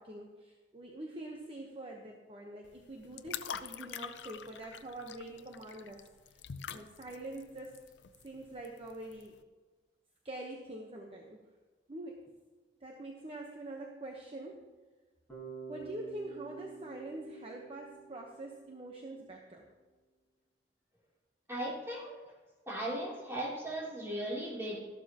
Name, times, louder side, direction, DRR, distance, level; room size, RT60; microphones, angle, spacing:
voice 1, 0.0-6.0 6.3-6.4 6.7-7.8 8.2-9.3 10.2-11.4 11.9-12.3 12.8-14.7 15.7-19.7, right 1 dB, 35° right, 0 dB, 1.0 m, -45 dB
sound 1, 2.6-9.4, left 8 dB, 85° left, 0.5 m, -46 dB
Bass guitar, 15.3-19.3, right 5 dB, 10° left, 4.3 m, -48 dB
voice 2, 21.5-22.1 22.7-24.8, right 1 dB, 15° right, -5 dB, 3.1 m, -37 dB
13.5 x 12.0 x 2.9 m, 1.3 s
head